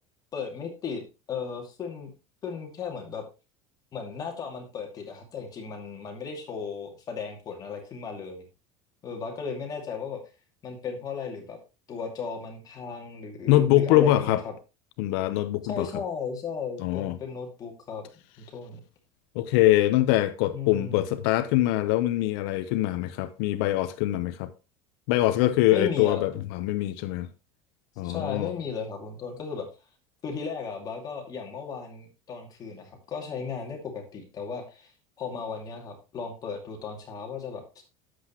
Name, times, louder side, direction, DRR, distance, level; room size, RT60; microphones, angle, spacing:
voice 1, 0.3-1.0 1.3-2.1 2.4-3.2 3.9-8.4 9.0-10.2 10.6-11.6 11.9-14.5 15.7-18.1 18.4-18.8 20.5-21.1 25.7-26.2 28.0-29.7 30.2-34.9 35.2-37.8, left 5 dB, 30° left, 2.4 m, -35 dB
voice 2, 13.5-14.4 15.0-15.9 16.8-17.2 19.3-24.5 25.1-27.3 28.0-28.5, left 14 dB, 70° left, 0.9 m, -23 dB
10.0 x 7.9 x 3.0 m
cardioid pair, 150°, 13 cm